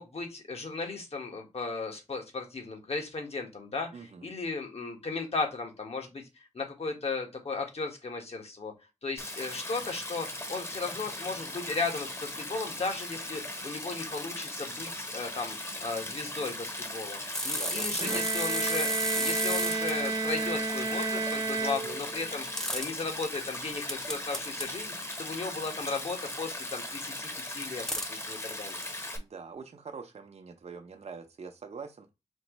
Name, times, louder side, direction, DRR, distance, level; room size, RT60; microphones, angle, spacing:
voice 1, 0.0-3.9 4.2-8.7 9.0-18.9 19.1-24.9 25.2-27.8 28.1-28.8, left 3 dB, 60° left, 1.4 m, -36 dB
voice 2, 3.9-4.3 17.4-18.2 21.8-21.9 29.2-32.1, right 5 dB, 60° right, 0.7 m, -44 dB
Stream, 9.2-29.2, left 1 dB, 20° left, 0.9 m, -38 dB
sound 1, 17.3-19.9 22.6-22.9 23.9-24.7 26.2-26.4 27.9-28.1, equal, 5° left, 0.5 m, -32 dB
Bowed string instrument, 18.0-22.4, right 4 dB, 35° right, 0.8 m, -32 dB
4.4 x 3.1 x 3.0 m
wide cardioid pair, 95°, 12 cm